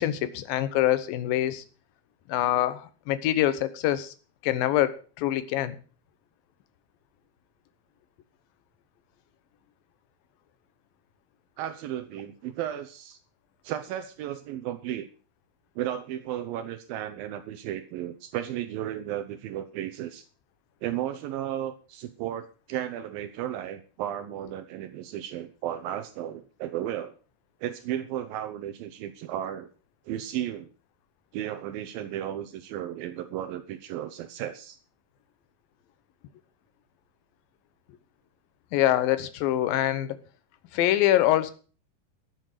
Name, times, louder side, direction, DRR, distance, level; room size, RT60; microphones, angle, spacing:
voice 1, 0.0-1.6 2.3-4.1 4.4-5.8 38.7-40.2 40.7-41.5, left 13 dB, 75° left, 12 dB, 2.7 m, -25 dB
voice 2, 11.6-13.2 13.6-15.1 15.8-20.3 20.8-27.1 27.6-29.7 30.1-30.7 31.3-34.8, right 11 dB, 80° right, 10 dB, 2.5 m, -34 dB
14.0 x 7.8 x 6.6 m, 0.38 s
omnidirectional pair, 4.3 m